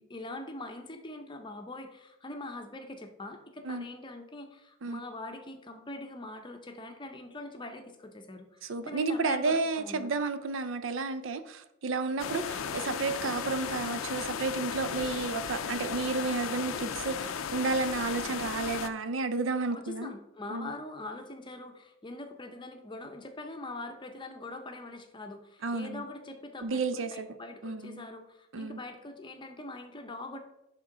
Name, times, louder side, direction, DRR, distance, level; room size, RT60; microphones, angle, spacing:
voice 1, 0.0-10.1 19.7-30.4, left 2 dB, 25° left, 5 dB, 0.7 m, -43 dB
voice 2, 8.6-20.1 20.5-20.7 25.6-26.0 26.6-27.3 27.6-28.0 28.5-28.8, right 3 dB, 70° right, 11 dB, 0.5 m, -32 dB
sound 1, 12.2-18.9, left 7 dB, 90° left, 0.5 m, -35 dB
11.0 x 3.7 x 3.8 m, 0.87 s
head